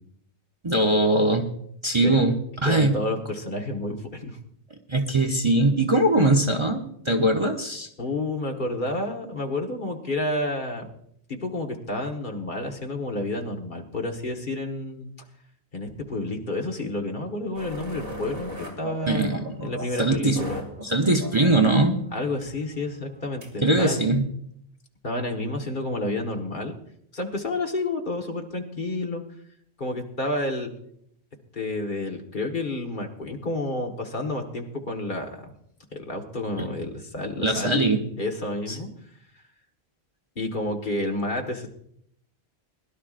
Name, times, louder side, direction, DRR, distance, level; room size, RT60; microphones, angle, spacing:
voice 1, 0.6-1.5 1.8-2.3 2.6-2.9 4.9-7.9 19.1-19.7 20.0-20.4 20.8-22.0 23.6-24.3 36.6-36.7 37.4-38.0 38.7-38.8, right 2 dB, 30° right, 3 dB, 0.9 m, -21 dB
voice 2, 2.6-4.4 8.0-10.9 11.3-15.1 15.7-20.6 22.1-24.1 25.0-26.7 27.1-29.2 29.8-30.7 31.5-35.4 35.9-37.9 38.2-38.9 40.3-41.7, left 2 dB, 50° left, 2 dB, 1.7 m, -30 dB
sound 1, 17.5-23.6, equal, 60° right, 2.8 m, -38 dB
21.0 x 12.0 x 2.5 m, 0.70 s
omnidirectional pair, 1.1 m